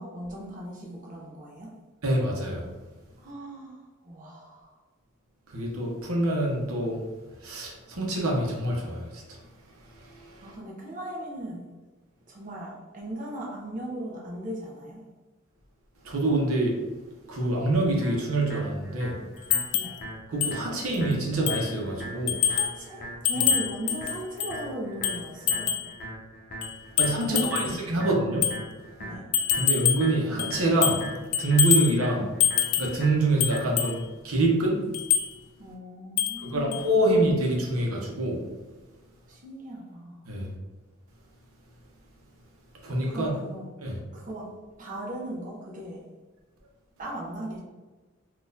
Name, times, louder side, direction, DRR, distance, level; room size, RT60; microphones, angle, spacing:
voice 1, 0.0-1.7 3.2-4.7 10.4-11.6 12.3-15.0 19.7-20.0 22.5-25.7 27.2-28.1 29.0-29.2 35.6-37.0 39.3-40.2 43.1-43.7 44.1-44.5 44.8-46.0 47.0-47.6, right 1 dB, 40° right, -3 dB, 0.6 m, -37 dB
voice 2, 2.0-2.6 5.5-7.0 7.4-9.2 16.0-16.7 17.3-19.1 20.3-22.4 23.4-23.5 27.0-28.5 29.6-31.0 31.4-32.3 32.8-34.8 36.4-38.4 40.3-40.5 42.8-43.3 43.8-44.0, right 2 dB, 85° right, -1 dB, 0.7 m, -25 dB
sound 1, 18.0-34.0, equal, 45° left, 0.6 m, -41 dB
sound 2, 19.5-20.0 20.4-20.6 20.9-21.0 21.5-21.7 22.3-22.8 23.2-24.6 25.0-25.9 26.6-27.8 28.4-28.6 29.3-30.1 30.4-31.1 31.3-31.9 32.4-33.0 33.4-34.0 34.9-35.3 36.2-36.4 36.7-36.8, left 9 dB, 85° left, 0.3 m, -25 dB
3.8 x 2.4 x 2.6 m, 1.3 s
head